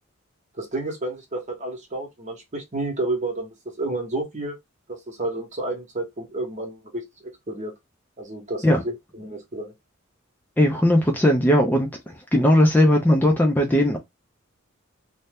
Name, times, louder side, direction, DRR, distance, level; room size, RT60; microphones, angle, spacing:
voice 1, 0.6-4.6 4.9-7.0 7.5-7.7 8.2-9.7, right 2 dB, 35° right, 1.0 m, -30 dB
voice 2, 10.6-14.0, left 1 dB, 10° left, 0.5 m, -18 dB
2.7 x 2.1 x 3.4 m
head